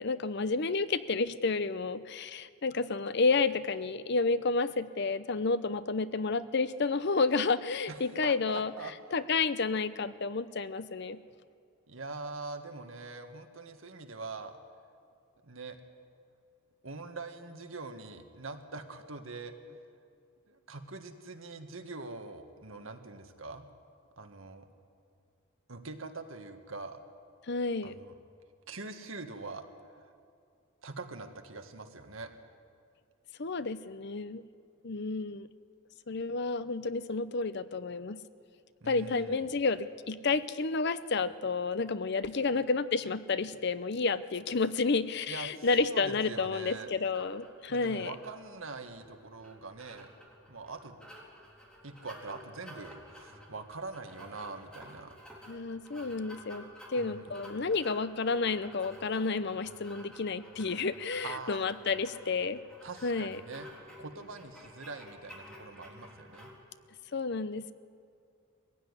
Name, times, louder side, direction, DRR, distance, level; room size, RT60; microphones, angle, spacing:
voice 1, 0.0-8.7 9.1-11.2 27.5-27.9 33.4-34.4 34.8-35.5 36.1-38.2 38.9-48.1 55.5-62.6 63.0-63.4 67.1-67.7, left 4 dB, 55° left, 14 dB, 0.7 m, -30 dB
voice 2, 7.9-8.9 11.9-14.6 15.4-15.8 16.8-19.8 20.5-23.6 24.2-24.7 25.7-27.0 27.8-28.1 28.7-30.1 30.8-32.3 38.8-39.5 45.3-46.9 47.7-50.1 50.5-51.0 51.8-55.1 57.0-57.3 61.2-61.6 62.8-63.7 64.0-66.5, right 3 dB, 75° right, 6 dB, 1.7 m, -43 dB
sound 1, 47.1-66.5, equal, 5° left, 3.7 m, -52 dB
21.0 x 16.0 x 9.8 m, 2.4 s
head